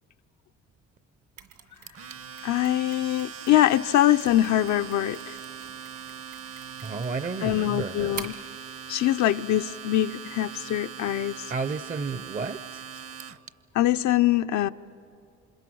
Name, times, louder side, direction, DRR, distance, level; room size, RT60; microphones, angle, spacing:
Mechanisms, 1.4-8.5, right 8 dB, 75° right, 2.4 m, -47 dB
Domestic sounds home sounds, 1.9-13.5, right 7 dB, 50° right, 0.8 m, -41 dB
voice 1, 2.4-5.4 7.4-8.3 8.9-11.5 13.7-14.7, left 13 dB, 70° left, 8 dB, 0.6 m, -23 dB
voice 2, 6.8-8.2 11.5-12.8, right 4 dB, 30° right, 14 dB, 0.6 m, -32 dB
28.5 x 26.5 x 6.2 m, 2.8 s
cardioid pair, 90°, 30 cm